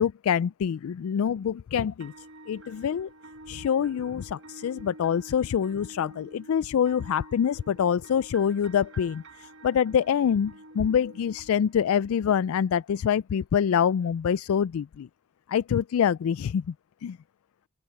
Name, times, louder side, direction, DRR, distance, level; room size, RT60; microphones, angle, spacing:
voice 1, 0.0-3.1 3.5-15.1 15.5-16.7 17.0-17.2, left 8 dB, 75° left, 0.3 m, -26 dB
sound 1, 2.0-12.0, right 1 dB, 60° right, 4.6 m, -49 dB
open air
head